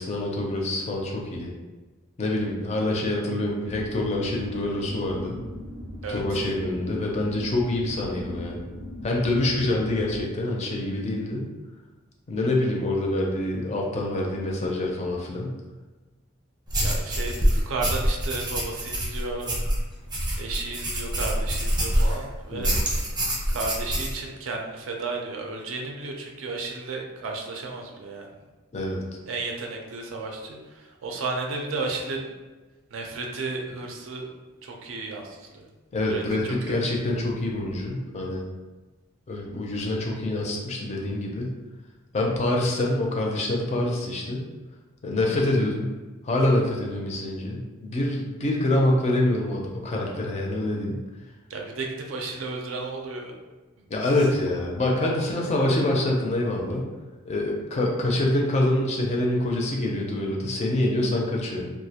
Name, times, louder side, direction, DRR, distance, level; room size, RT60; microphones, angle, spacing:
voice 1, 0.0-1.5 2.2-5.4 6.1-8.6 9.0-11.4 12.3-15.5 22.5-22.8 28.7-29.0 35.9-38.4 39.3-41.5 42.1-44.4 45.0-45.9 46.2-51.0 53.9-56.9 57.2-61.7, left 1 dB, 35° left, -1 dB, 0.4 m, -26 dB
sound 1, 3.6-10.2, left 1 dB, 90° left, 0.6 m, -39 dB
voice 2, 6.0-6.5 16.8-19.5 20.4-22.8 23.5-28.3 29.3-32.3 32.9-34.3 34.6-35.7 36.1-36.9 45.2-45.4 51.5-53.3 53.8-53.9 54.2-54.3 55.2-55.3, right 3 dB, 70° right, 1 dB, 0.4 m, -33 dB
sound 2, 16.7-22.2 22.6-24.1, equal, 20° right, 0.6 m, -25 dB
2.3 x 2.0 x 2.7 m, 1.2 s
head